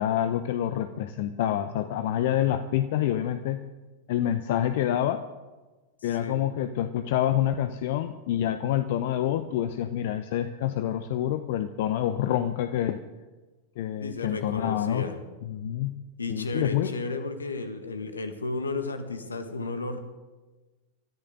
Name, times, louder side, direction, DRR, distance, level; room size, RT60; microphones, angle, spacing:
voice 1, 0.0-3.6 4.1-5.2 6.0-13.0 13.8-15.1 15.4-15.9 16.3-16.9, left 11 dB, 50° left, 11 dB, 0.7 m, -27 dB
voice 2, 6.0-6.4 14.0-15.2 16.2-20.0, left 3 dB, 75° left, 9 dB, 1.7 m, -33 dB
24.5 x 13.5 x 3.8 m, 1.2 s
figure-of-eight pair, 90°, 0 cm